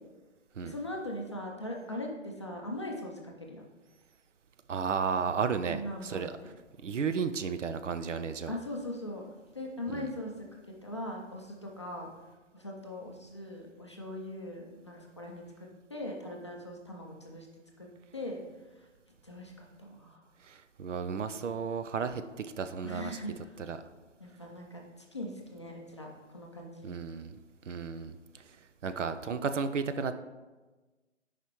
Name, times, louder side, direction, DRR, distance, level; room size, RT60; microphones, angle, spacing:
voice 1, 0.6-3.7 5.7-6.5 8.5-10.5 10.8-12.1 12.5-17.5 17.8-17.9 18.1-18.4 18.7-18.9 19.2-20.2 22.8-23.6 24.2-26.9, left 1 dB, 25° left, -1 dB, 0.5 m, -40 dB
voice 2, 4.7-6.4 6.8-8.6 9.9-10.1 20.5-23.1 23.7-23.8 26.8-27.3 27.7-28.1 28.8-30.1, right 6 dB, 75° right, 10 dB, 0.6 m, -33 dB
8.9 x 5.0 x 3.0 m, 1.2 s
figure-of-eight pair, 155°, 37 cm